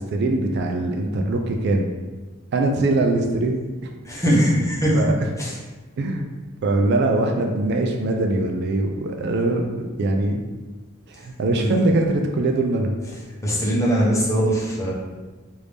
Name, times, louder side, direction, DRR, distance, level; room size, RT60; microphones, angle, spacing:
voice 1, 0.0-1.9 2.5-3.6 4.2-4.5 4.9-5.1 6.0-6.3 6.6-10.4 11.1-12.9, right 2 dB, 55° right, 3 dB, 0.3 m, -22 dB
voice 2, 4.0-5.0 5.4-5.5 11.6-11.8 13.4-14.9, equal, 15° left, -5 dB, 0.7 m, -21 dB
3.3 x 2.6 x 3.2 m, 1.2 s
head